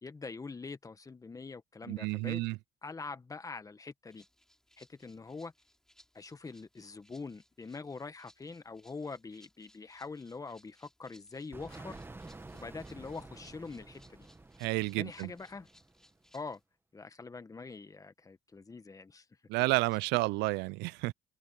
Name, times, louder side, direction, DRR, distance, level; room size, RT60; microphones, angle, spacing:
voice 1, 0.0-2.4 2.8-4.2 4.8-5.5 6.1-14.3 15.0-15.7 16.3-16.6 16.9-19.2 19.6-19.7, left 4 dB, 20° left, 1.4 m, -44 dB
voice 2, 1.9-2.6 14.6-15.3 19.5-21.1, right 22 dB, 90° right, 0.4 m, -31 dB
Rattle (instrument), 4.1-16.6, equal, 5° left, 6.6 m, -66 dB
sound 1, 11.5-16.2, right 2 dB, 15° right, 1.4 m, -50 dB
open air
cardioid pair, 110°, 17 cm